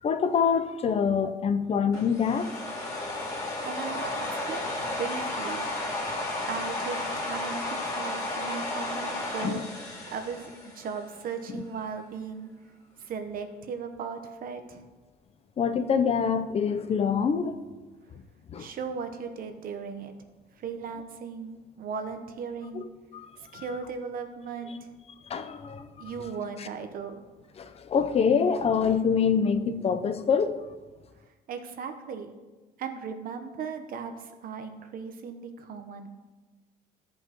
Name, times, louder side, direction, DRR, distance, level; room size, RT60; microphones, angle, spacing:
voice 1, 0.0-2.5 6.1-6.2 9.4-9.6 11.5-11.6 15.6-17.6 18.5-18.7 22.7-22.8 23.1-23.3 23.5-23.6 25.3-25.9 26.6-26.7 27.6-30.5, left 6 dB, 35° left, 10 dB, 0.6 m, -25 dB
sound 1, 1.9-11.1, left 2 dB, 20° left, 2.0 m, -33 dB
voice 2, 3.6-4.7 5.0-5.7 6.4-9.6 10.1-12.5 13.0-14.8 18.6-20.1 20.6-22.8 23.5-24.9 26.0-27.2 31.5-32.3 32.8-36.1, right 5 dB, 60° right, 7 dB, 1.0 m, -37 dB
14.0 x 5.4 x 3.0 m, 1.2 s
cardioid pair, 110°, 17 cm